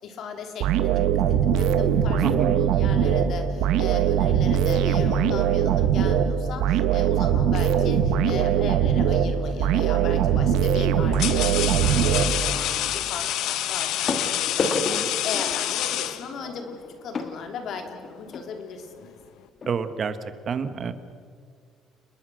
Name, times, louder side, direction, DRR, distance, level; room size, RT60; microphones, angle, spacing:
voice 1, 0.0-16.7 17.0-19.1, left 5 dB, 55° left, 5 dB, 3.5 m, -37 dB
sound 1, 0.6-12.8, right 8 dB, 80° right, 1.5 m, -21 dB
voice 2, 2.2-2.6 19.7-20.1 20.5-20.9, right 6 dB, 35° right, 11 dB, 1.4 m, -27 dB
sound 2, 9.6-9.9 10.7-16.6, left 13 dB, 70° left, 1.0 m, -28 dB
sound 3, 14.1-18.5 19.3-19.4 19.6-19.7 20.3-20.4, left 3 dB, 35° left, 2.0 m, -32 dB
30.0 x 21.0 x 6.4 m, 2.1 s
cardioid pair, 150°, 0 cm